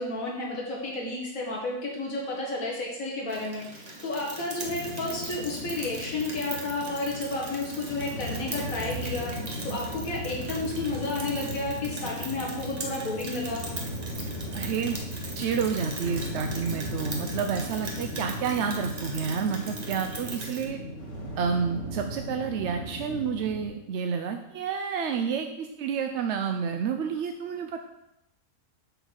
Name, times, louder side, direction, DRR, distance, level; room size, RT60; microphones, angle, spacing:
voice 1, 0.0-9.3 9.6-13.6, left 2 dB, 65° left, -2 dB, 1.9 m, -32 dB
Rain, 3.3-20.6, right 2 dB, 30° right, 1.1 m, -40 dB
sound 1, 4.6-23.7, equal, 45° left, 2.7 m, -37 dB
voice 2, 14.5-15.0 15.4-20.8 21.4-27.8, right 6 dB, 65° right, 5 dB, 0.7 m, -29 dB
7.9 x 4.0 x 6.3 m, 0.85 s
omnidirectional pair, 1.6 m